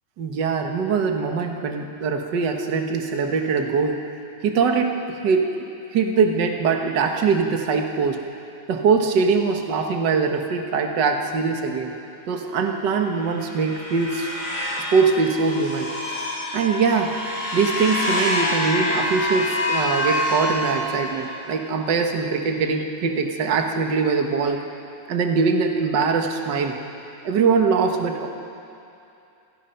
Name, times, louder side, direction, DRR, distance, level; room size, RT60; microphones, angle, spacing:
voice 1, 0.2-4.0 4.4-4.9 5.2-8.2 8.7-11.9 12.3-14.3 14.9-15.9 16.5-17.1 17.5-24.6 25.1-26.8 27.2-28.3, right 5 dB, 55° right, 4 dB, 1.2 m, -22 dB
sound 1, 13.1-21.4, left 1 dB, 85° left, 8.7 m, -26 dB
28.0 x 16.0 x 5.7 m, 2.7 s
omnidirectional pair, 3.8 m